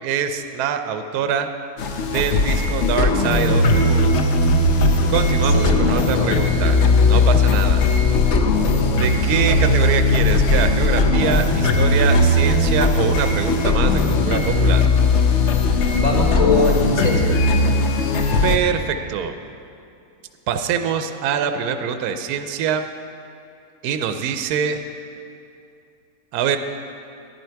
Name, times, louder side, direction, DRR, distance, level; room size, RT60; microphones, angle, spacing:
voice 1, 0.0-1.5 2.1-4.1 5.1-6.8 7.1-7.8 9.0-14.8 18.4-19.3 20.5-22.9 23.8-24.8 26.3-26.6, right 7 dB, 70° right, 8 dB, 1.0 m, -24 dB
sound 1, 1.8-18.6, left 2 dB, 60° left, 0.8 m, -18 dB
sound 2, 4.3-15.7, equal, 45° left, 3.2 m, -35 dB
voice 2, 5.4-6.3 15.9-17.3, left 2 dB, 25° left, -1 dB, 1.3 m, -22 dB
11.0 x 10.5 x 4.5 m, 2.6 s
omnidirectional pair, 1.9 m